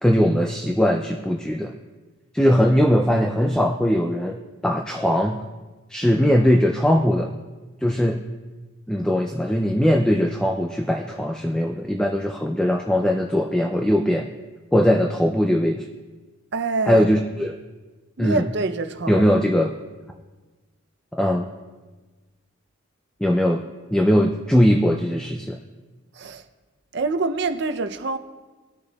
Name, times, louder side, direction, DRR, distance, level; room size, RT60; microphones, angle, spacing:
voice 1, 0.0-1.7 2.3-5.4 5.9-7.3 7.8-8.2 8.9-14.3 14.7-15.8 16.9-17.5 18.2-18.5 19.1-19.7 21.1-21.5 23.2-23.6 23.9-25.6, equal, 5° left, 2 dB, 0.3 m, -20 dB
voice 2, 16.5-17.1 18.2-19.2 26.1-26.4 26.9-28.2, right 3 dB, 55° right, 9 dB, 0.5 m, -25 dB
18.0 x 6.6 x 2.3 m, 1.3 s
head